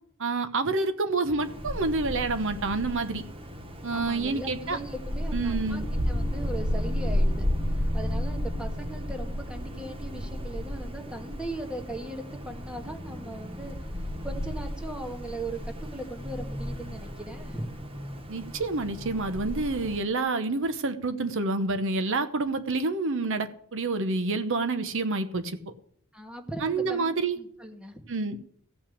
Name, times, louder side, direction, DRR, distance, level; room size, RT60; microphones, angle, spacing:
voice 1, 0.2-3.2 3.8-4.8 5.3-5.9 18.3-25.7 26.6-27.4 28.1-28.4, right 3 dB, 60° right, 10 dB, 0.9 m, -28 dB
Wind, 1.4-20.0, equal, 25° right, 1.4 m, -33 dB
voice 2, 3.9-13.8 14.2-17.7 26.1-28.1, right 1 dB, 5° right, 4 dB, 1.8 m, -39 dB
16.0 x 5.9 x 8.5 m, 0.65 s
head